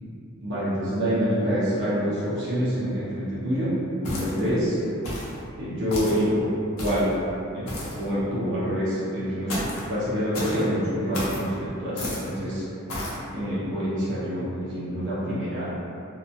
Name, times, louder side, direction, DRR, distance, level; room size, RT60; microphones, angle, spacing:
voice 1, 0.4-3.7 4.0-4.8 5.6-6.4 6.8-7.1 7.5-7.6 8.0-9.6 9.9-11.5 11.8-12.6 13.3-15.7, equal, 60° right, -10 dB, 0.7 m, -26 dB
sound 1, 4.0-4.5 5.0-5.4 5.9-6.2 6.8-7.1 7.7-8.0 9.5-9.9 10.3-10.6 11.1-11.4 12.0-12.3 12.9-13.2, left 1 dB, 85° left, 0.7 m, -32 dB
2.7 x 2.2 x 2.6 m, 2.6 s
head